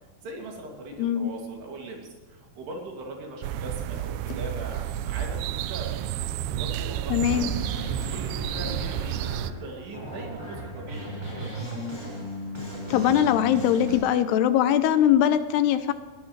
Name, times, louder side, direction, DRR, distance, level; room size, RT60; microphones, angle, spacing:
voice 1, 0.2-6.1 6.5-11.5, right 2 dB, 70° right, 0 dB, 4.6 m, -40 dB
voice 2, 1.0-1.3 7.1-7.5 12.9-15.9, left 10 dB, 80° left, 11 dB, 2.6 m, -21 dB
sound 1, 3.4-9.5, right 12 dB, 90° right, 2.1 m, -31 dB
sound 2, 3.9-5.0 6.8-6.9 8.0-9.1, left 4 dB, 55° left, 2.6 m, -45 dB
sound 3, 7.3-14.0, left 1 dB, 5° right, 5.5 m, -36 dB
19.5 x 17.0 x 3.3 m, 1.3 s
omnidirectional pair, 4.9 m